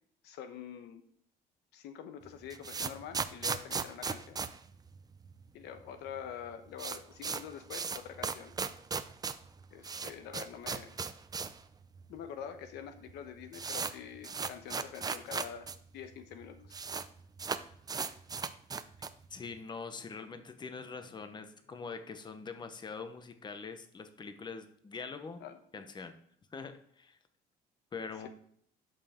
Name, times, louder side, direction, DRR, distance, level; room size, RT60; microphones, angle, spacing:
voice 1, 0.2-1.0 1.7-4.4 5.5-8.5 9.7-11.0 12.1-15.7 15.9-16.8 25.4-25.9, left 8 dB, 85° left, 8 dB, 1.1 m, -46 dB
sound 1, 2.2-5.5 5.7-5.8 6.1-6.2 6.5-11.7 12.0-12.1 12.8-12.9 13.1-15.8 16.0-16.1 16.3-17.1 17.4-19.3, right 5 dB, 25° right, 0.5 m, -37 dB
voice 2, 19.3-25.4 25.7-26.2 26.5-27.2 27.9-28.3, left 5 dB, 25° left, 8 dB, 1.0 m, -43 dB
11.5 x 5.7 x 3.7 m, 0.64 s
cardioid pair, 110°, 17 cm